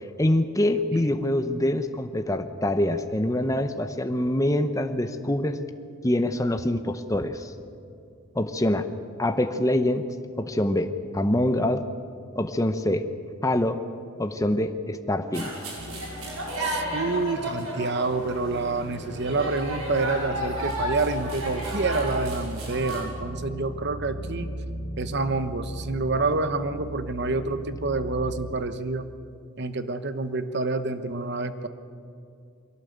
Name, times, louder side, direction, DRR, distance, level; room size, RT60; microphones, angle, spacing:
voice 1, 0.2-5.6 6.0-7.5 8.3-8.9 9.2-10.0 10.4-11.8 12.4-13.1 13.4-13.8 14.2-15.5, left 1 dB, 15° left, 8 dB, 0.8 m, -25 dB
sound 1, 15.3-23.0, right 1 dB, 90° right, 6.0 m, -33 dB
sound 2, 15.8-28.4, right 1 dB, 75° left, 1.6 m, -38 dB
voice 2, 16.6-24.5 25.0-29.1 29.6-31.7, right 3 dB, 50° right, 10 dB, 1.0 m, -28 dB
22.5 x 17.0 x 8.1 m, 2.5 s
head